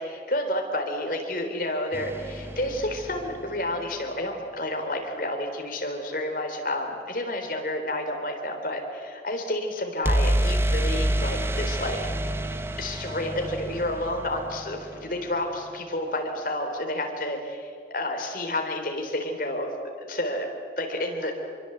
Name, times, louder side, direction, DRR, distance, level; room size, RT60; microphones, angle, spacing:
voice 1, 0.0-12.0 12.3-12.4 12.8-19.7 20.0-20.5 20.8-21.4, left 1 dB, 50° left, 3 dB, 3.8 m, -30 dB
sound 1, 1.9-3.9 10.0-15.8, right 1 dB, 15° right, 0.8 m, -28 dB
26.5 x 23.0 x 8.1 m, 2.3 s
head